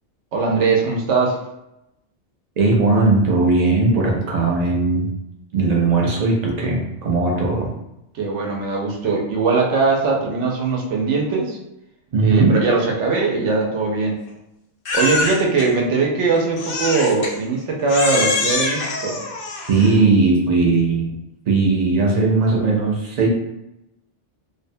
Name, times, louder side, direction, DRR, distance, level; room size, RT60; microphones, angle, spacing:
voice 1, 0.3-1.4 8.2-11.6 12.2-14.2 14.9-19.2, right 4 dB, 75° right, -1 dB, 0.9 m, -20 dB
voice 2, 2.6-5.1 5.5-7.7 12.1-12.6 19.7-21.1 21.5-23.3, right 3 dB, 60° right, -1 dB, 0.4 m, -18 dB
Crying sobbing, 14.9-15.7 16.6-17.3 17.9-20.0, left 3 dB, 60° left, 0.6 m, -24 dB
2.6 x 2.1 x 2.6 m, 0.88 s
omnidirectional pair, 1.2 m